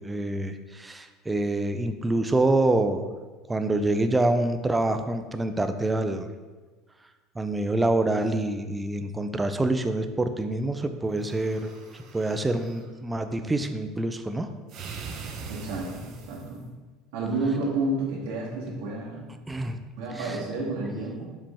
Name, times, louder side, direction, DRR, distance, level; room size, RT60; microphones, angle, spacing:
voice 1, 0.0-3.1 3.5-6.3 7.4-14.5 19.5-19.8 20.2-20.4, right 2 dB, 10° right, 8 dB, 0.3 m, -26 dB
sound 1, 11.1-12.8 14.7-16.6, right 5 dB, 40° right, 0.7 m, -41 dB
voice 2, 15.5-16.6 17.1-19.3 20.0-21.3, right 2 dB, 75° right, -4 dB, 1.7 m, -30 dB
5.4 x 5.3 x 3.4 m, 1.3 s
cardioid pair, 165°, 0 cm